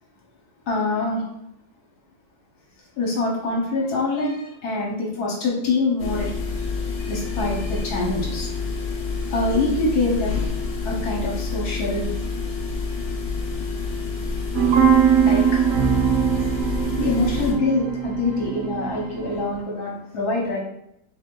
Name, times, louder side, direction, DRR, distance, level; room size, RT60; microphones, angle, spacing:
voice 1, 0.7-1.2 3.0-6.3 7.0-8.5 9.3-10.5 10.8-12.1 15.2-15.6 17.0-20.6, left 2 dB, 75° left, -3 dB, 1.6 m, -25 dB
sound 1, 6.0-17.5, left 4 dB, 50° left, 1.3 m, -28 dB
sound 2, 14.5-19.5, right 8 dB, 65° right, 1.1 m, -21 dB
3.8 x 3.4 x 3.8 m, 0.78 s
omnidirectional pair, 1.7 m